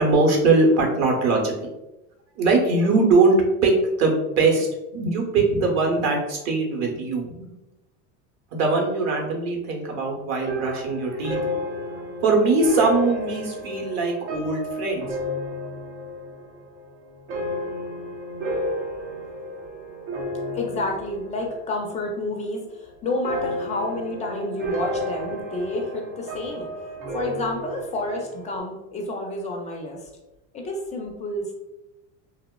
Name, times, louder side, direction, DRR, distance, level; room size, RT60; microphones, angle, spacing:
voice 1, 0.0-1.5 2.4-3.4 3.6-3.7 4.0-4.7 4.9-7.5 8.5-11.4 12.2-15.1, right 3 dB, 45° right, 0 dB, 0.8 m, -21 dB
sound 1, 10.5-21.9 22.2-22.8 23.2-28.6, equal, 85° right, 0.7 m, -32 dB
voice 2, 20.5-26.7 27.1-30.0 30.5-31.5, left 2 dB, 20° left, 1 dB, 0.3 m, -29 dB
2.8 x 2.0 x 2.2 m, 0.98 s
supercardioid pair, 110°, 39 cm